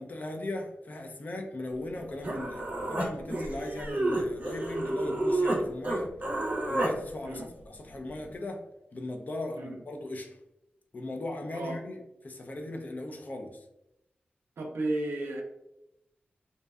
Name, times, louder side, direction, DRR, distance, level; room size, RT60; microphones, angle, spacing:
voice 1, 0.0-6.1 6.7-8.6 8.9-10.3 10.9-12.0 12.2-13.6, left 1 dB, 45° left, 3 dB, 0.4 m, -37 dB
Human voice, 1.9-2.0 2.2-5.6 5.8-6.9, right 2 dB, 40° right, 0.5 m, -30 dB
voice 2, 14.6-15.4, right 2 dB, 90° right, 0 dB, 0.4 m, -33 dB
2.6 x 2.1 x 2.3 m, 0.87 s
wide cardioid pair, 85°, 4 cm